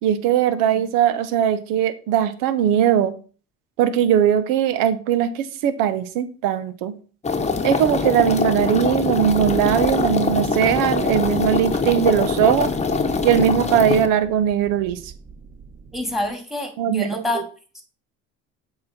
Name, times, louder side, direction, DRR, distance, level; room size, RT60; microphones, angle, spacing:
voice 1, 0.0-3.1 3.8-6.9 7.6-12.7 13.2-15.1 16.8-17.4, right 9 dB, 75° right, 13 dB, 1.0 m, -20 dB
sound 1, 7.2-14.1, left 4 dB, 20° left, 1.1 m, -23 dB
sound 2, 9.3-16.3, right 6 dB, 25° right, 0.7 m, -39 dB
voice 2, 15.9-17.4, left 1 dB, ahead, 4 dB, 2.3 m, -26 dB
7.6 x 4.2 x 4.3 m, 0.38 s
supercardioid pair, 75°, 34 cm